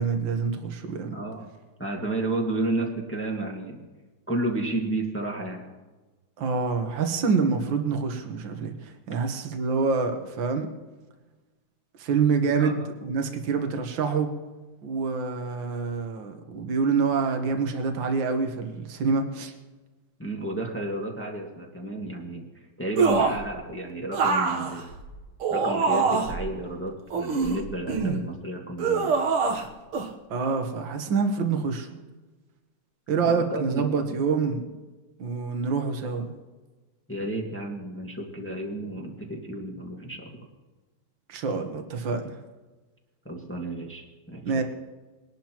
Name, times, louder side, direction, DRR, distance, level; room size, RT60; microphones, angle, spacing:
voice 1, 0.0-1.1 6.4-10.7 12.0-14.3 14.8-19.5 30.3-31.9 33.1-34.6 35.2-36.3 41.3-42.4 44.5-44.6, right 5 dB, 60° right, 5 dB, 2.0 m, -26 dB
voice 2, 1.1-1.5 1.8-3.8 4.3-5.6 12.6-12.7 20.2-22.4 22.8-24.9 25.5-29.2 33.2-34.2 37.1-40.3 43.2-44.6, right 2 dB, 5° left, -1 dB, 1.6 m, -32 dB
sound 1, 23.0-23.5 24.1-26.4 27.1-28.2 28.8-29.7 29.9-30.1, right 4 dB, 80° right, 2.1 m, -24 dB
22.5 x 11.5 x 3.0 m, 1.2 s
omnidirectional pair, 2.4 m